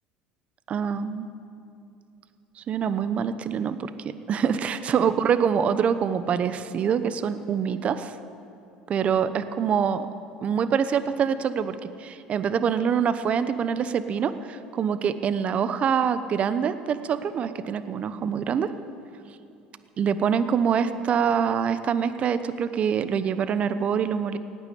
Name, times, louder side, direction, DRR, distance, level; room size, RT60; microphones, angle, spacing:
voice 1, 0.7-1.3 2.6-3.9 4.3-8.1 8.9-10.1 10.4-18.7 20.0-24.4, right 7 dB, 45° right, 12 dB, 0.9 m, -25 dB
17.5 x 9.6 x 8.5 m, 2.6 s
hypercardioid pair, 80°, 3 cm